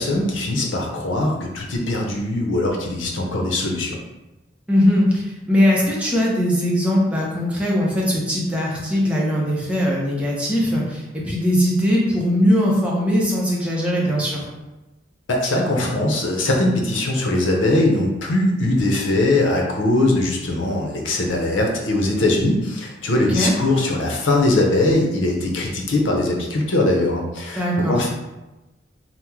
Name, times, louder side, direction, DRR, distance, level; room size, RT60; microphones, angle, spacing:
voice 1, 0.0-4.0 15.3-28.1, left 2 dB, 90° left, 1 dB, 0.6 m, -21 dB
voice 2, 4.7-14.4 23.3-23.5 27.6-28.0, equal, 5° right, -5 dB, 0.6 m, -20 dB
2.9 x 2.0 x 3.5 m, 1.0 s
head